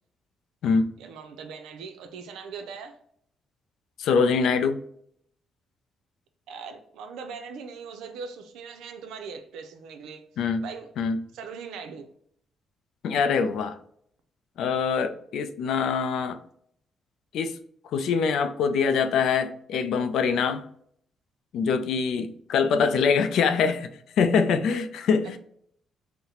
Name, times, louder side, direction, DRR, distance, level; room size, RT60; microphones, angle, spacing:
voice 1, 1.0-3.0 6.5-10.3 10.6-10.9 11.3-12.1 25.2-25.4, right 5 dB, 90° right, 7 dB, 0.5 m, -40 dB
voice 2, 4.0-4.8 10.4-10.6 11.0-11.2 13.0-13.7 14.6-16.4 17.3-17.6 17.9-20.6 21.5-23.9 24.2-25.4, left 5 dB, 75° left, 9 dB, 0.4 m, -24 dB
3.9 x 2.1 x 2.8 m, 0.67 s
cardioid pair, 90°, 0 cm